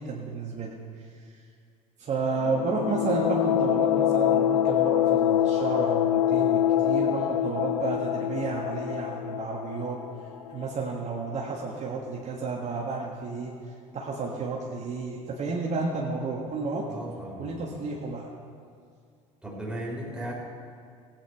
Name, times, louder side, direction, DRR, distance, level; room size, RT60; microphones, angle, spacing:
voice 1, 0.0-1.4 2.0-10.0 10.5-13.5 13.9-16.9 17.4-18.3, right 4 dB, 40° right, -2 dB, 1.6 m, -32 dB
sound 1, 2.4-11.0, left 10 dB, 85° left, 0.4 m, -25 dB
voice 2, 16.9-17.6 19.4-20.3, right 1 dB, 5° right, -3 dB, 3.7 m, -36 dB
16.0 x 9.1 x 4.7 m, 2.2 s
hypercardioid pair, 70°, 18 cm